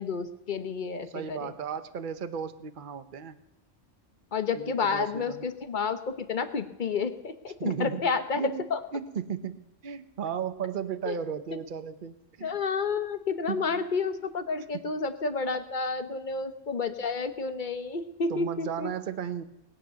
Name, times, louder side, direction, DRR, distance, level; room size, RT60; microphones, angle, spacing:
voice 1, 0.0-1.5 4.3-8.8 11.0-11.2 12.4-18.9, left 5 dB, 40° left, 10 dB, 1.1 m, -30 dB
voice 2, 1.1-3.4 4.5-5.5 7.6-8.0 8.3-8.7 8.9-12.6 13.5-13.9 14.7-14.8 16.0-16.2 18.3-19.4, right 7 dB, 45° right, 11 dB, 1.0 m, -35 dB
19.5 x 8.9 x 6.9 m, 0.89 s
omnidirectional pair, 1.3 m